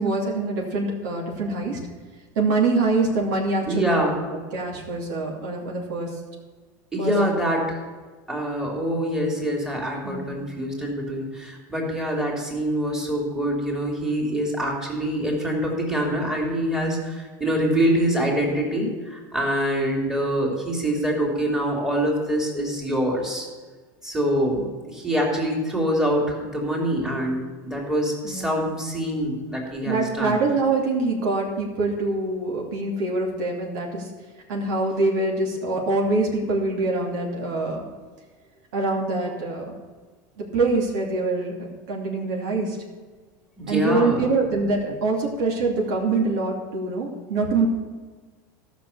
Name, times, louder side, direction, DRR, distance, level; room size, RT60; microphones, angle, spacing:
voice 1, 0.0-1.8 2.3-4.0 4.3-6.1 7.0-7.1 10.0-10.4 28.2-28.6 29.8-34.1 34.5-37.8 38.7-39.8 40.4-42.8 43.7-47.6, right 3 dB, 75° right, -1 dB, 2.8 m, -24 dB
voice 2, 3.7-4.3 6.9-7.8 8.3-23.5 24.0-27.4 27.6-30.4 43.6-44.3, equal, 5° right, -1 dB, 2.8 m, -25 dB
13.0 x 6.1 x 7.1 m, 1.4 s
supercardioid pair, 120°, 10 cm